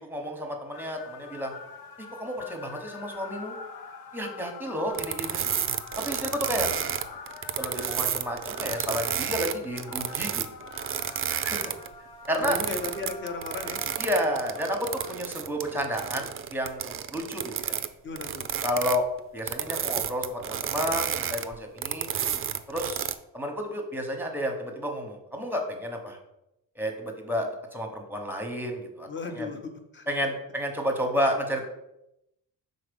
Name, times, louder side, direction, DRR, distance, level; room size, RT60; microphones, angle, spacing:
voice 1, 0.1-1.5 2.0-3.6 4.1-5.5 6.0-6.7 7.6-10.4 11.3-11.6 12.3-12.6 14.0-17.8 18.6-19.0 19.3-22.1 22.7-23.1 23.3-26.2 26.8-29.5 30.1-31.7, equal, 5° right, 3 dB, 1.0 m, -31 dB
sound 1, 0.7-15.1, left 5 dB, 90° left, 0.7 m, -45 dB
sound 2, 4.9-11.9 12.3-17.9 18.2-23.1, right 9 dB, 40° right, 0.4 m, -31 dB
voice 2, 12.4-13.8 18.0-18.5 29.1-30.1, left 3 dB, 30° left, 4 dB, 0.9 m, -35 dB
5.7 x 4.0 x 5.2 m, 0.86 s
cardioid pair, 135°, 36 cm